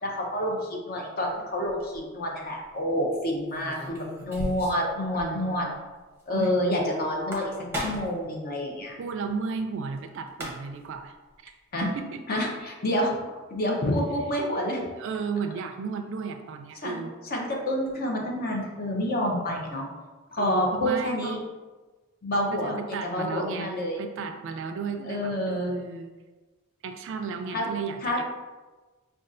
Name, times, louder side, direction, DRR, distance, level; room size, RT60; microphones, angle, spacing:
voice 1, 0.0-5.7 6.3-7.5 7.8-8.9 11.7-11.9 12.3-14.8 16.8-19.9 20.3-21.4 22.2-24.0 25.1-25.8 27.5-27.6 28.0-28.2, left 1 dB, 45° left, -1 dB, 0.7 m, -28 dB
sound 1, 1.6-2.0 3.5-4.9 5.2-5.3 5.6-5.7 7.1-8.2 10.0-10.1 10.3-10.9, equal, 10° right, 0.7 m, -35 dB
voice 2, 5.1-5.8 6.3-6.5 9.0-11.2 11.4-11.5 11.8-12.5 15.0-17.1 20.4-21.4 22.5-26.1 26.8-28.2, right 5 dB, 60° right, 6 dB, 0.3 m, -34 dB
5.2 x 2.3 x 2.5 m, 1.2 s
head